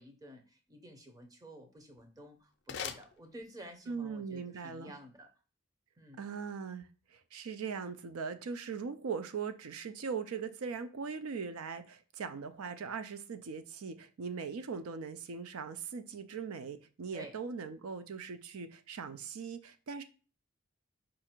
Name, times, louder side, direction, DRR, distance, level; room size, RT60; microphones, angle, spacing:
voice 1, 0.0-5.3 6.0-6.2 14.3-14.4 17.1-17.3, equal, 15° right, 0.7 m, -51 dB
sound 1, 1.8-3.9, left 7 dB, 50° left, 0.4 m, -45 dB
voice 2, 3.9-4.9 6.2-20.0, right 5 dB, 85° right, 0.5 m, -40 dB
4.8 x 2.5 x 4.4 m
head